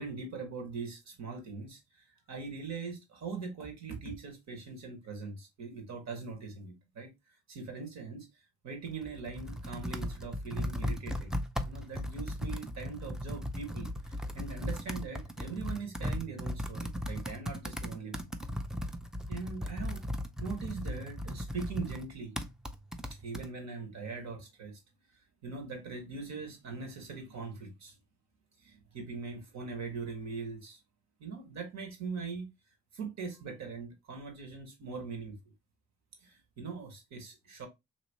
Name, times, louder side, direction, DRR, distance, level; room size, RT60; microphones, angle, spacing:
voice 1, 0.0-7.1 7.5-8.3 8.6-11.3 11.6-18.3 19.3-20.0 20.4-22.4 23.1-24.8 25.4-27.9 28.6-30.8 31.2-32.5 32.9-35.3 36.2-37.7, right 4 dB, 65° right, 1.6 m, -41 dB
Computer keyboard, 8.9-23.5, equal, ahead, 0.4 m, -37 dB
3.0 x 2.9 x 2.9 m
cardioid pair, 90°, 30 cm